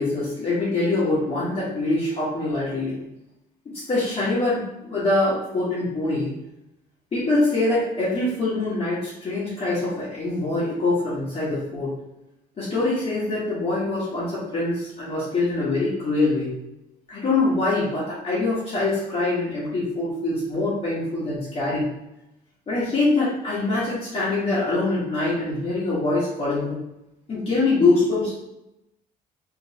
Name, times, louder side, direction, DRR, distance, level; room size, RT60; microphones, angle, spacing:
voice 1, 0.0-3.0 3.9-6.3 7.1-11.9 12.6-16.5 17.1-21.9 22.7-26.8 27.3-28.3, left 2 dB, 35° left, -10 dB, 1.3 m, -24 dB
3.1 x 3.0 x 2.8 m, 0.89 s
cardioid pair, 110°, 17 cm